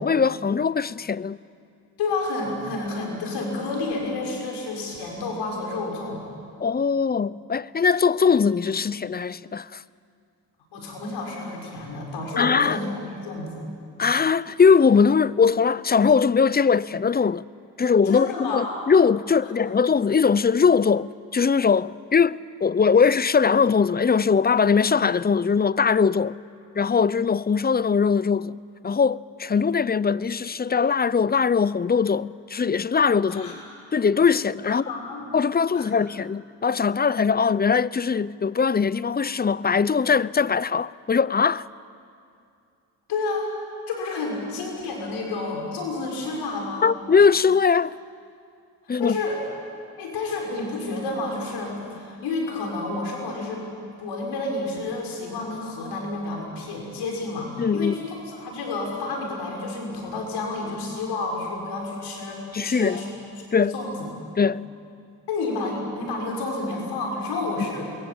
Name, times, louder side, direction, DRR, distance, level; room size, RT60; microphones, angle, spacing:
voice 1, 0.0-1.4 6.6-9.8 12.4-12.8 14.0-17.4 17.8-26.4 26.8-28.6 28.8-33.6 33.9-34.8 35.3-41.7 46.8-48.0 48.9-49.2 57.6-58.0 62.5-63.0 63.5-63.7 64.4-64.7, left 6 dB, 25° left, 0.7 m, -21 dB
voice 2, 2.0-6.2 10.7-13.6 18.1-18.8 33.3-33.5 34.9-35.3 35.7-35.8 43.1-43.5 43.9-46.9 49.0-49.4 50.0-53.6 54.0-63.1 63.6-64.1 65.3-67.8, left 3 dB, 85° left, 6.5 m, -30 dB
27.0 x 22.5 x 8.8 m
supercardioid pair, 55°, 39 cm